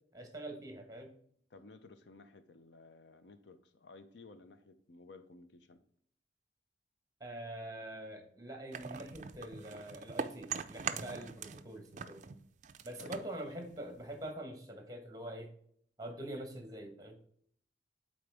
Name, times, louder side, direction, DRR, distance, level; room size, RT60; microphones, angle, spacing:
voice 1, 0.1-1.1 7.2-12.2 12.8-15.5 16.0-17.2, right 1 dB, 20° right, 5 dB, 1.1 m, -44 dB
voice 2, 1.5-5.8 13.0-13.4, left 3 dB, 70° left, 10 dB, 0.6 m, -55 dB
sound 1, 8.7-11.7 11.9-14.3, right 6 dB, 40° right, 0.4 m, -42 dB
8.8 x 4.0 x 3.4 m, 0.63 s
head